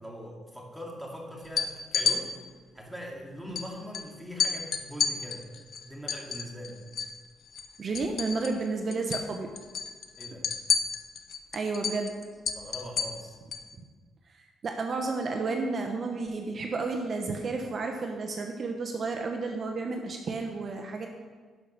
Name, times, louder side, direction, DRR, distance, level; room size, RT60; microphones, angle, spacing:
voice 1, 0.0-2.4 2.7-5.5 5.9-6.8 10.2-10.5 12.5-13.4, equal, ahead, -2 dB, 2.4 m, -41 dB
sound 1, 1.4-2.2 3.5-3.6 3.9-4.0 4.4-7.2 7.5-8.7 8.9-9.3 9.6-13.7, left 6 dB, 60° left, 0.9 m, -30 dB
voice 2, 7.8-9.5 11.5-12.1 14.6-21.1, right 3 dB, 45° right, 3 dB, 1.0 m, -31 dB
11.0 x 5.8 x 6.4 m, 1.5 s
cardioid pair, 90°, 0 cm